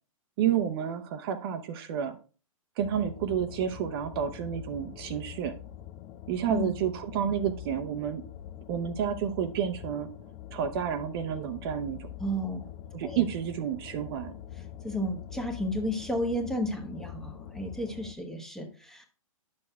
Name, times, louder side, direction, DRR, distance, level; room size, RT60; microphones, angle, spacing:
voice 1, 0.4-2.2 2.8-5.5 6.3-8.2 8.7-10.1 10.5-12.1 12.9-14.3, right 9 dB, 45° right, 8 dB, 0.7 m, -30 dB
sound 1, 2.8-18.1, left 11 dB, 30° left, 0.5 m, -44 dB
voice 2, 12.2-12.7 13.0-13.2 14.8-19.1, equal, ahead, 2 dB, 1.0 m, -32 dB
10.5 x 6.4 x 2.2 m, 0.36 s
hypercardioid pair, 125°, 18 cm